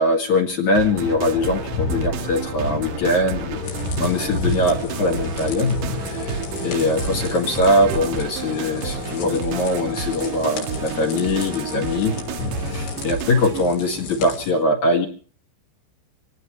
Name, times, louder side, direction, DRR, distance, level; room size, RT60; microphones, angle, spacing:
voice 1, 0.0-3.6 4.0-12.2 12.6-15.1, left 1 dB, 50° left, 2 dB, 2.6 m, -22 dB
sound 1, 0.7-13.7, right 8 dB, 75° right, 2.0 m, -31 dB
sound 2, 0.9-13.0, left 3 dB, 90° left, 6.6 m, -31 dB
sound 3, 3.6-14.5, left 4 dB, 70° left, 5.9 m, -37 dB
25.0 x 17.5 x 3.2 m, 0.40 s
omnidirectional pair, 5.4 m